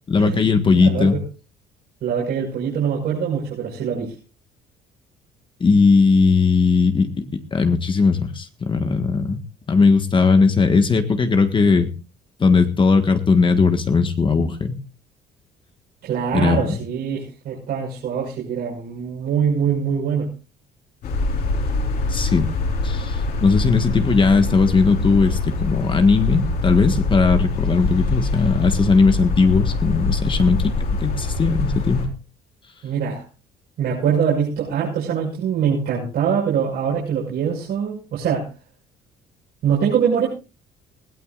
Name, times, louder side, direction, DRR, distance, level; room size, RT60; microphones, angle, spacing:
voice 1, 0.1-1.2 5.6-7.3 7.5-9.4 9.7-11.9 12.4-14.8 16.3-16.6 22.1-22.5 22.8-30.7 31.0-32.1, left 4 dB, 30° left, 7 dB, 1.6 m, -18 dB
voice 2, 0.7-1.2 2.0-4.1 16.0-20.3 32.8-33.2 33.8-38.5 39.6-40.3, right 7 dB, 70° right, -4 dB, 6.0 m, -23 dB
sound 1, 21.0-32.0, left 2 dB, 65° left, 4.9 m, -24 dB
21.0 x 16.5 x 2.5 m, 0.31 s
cardioid pair, 110°, 17 cm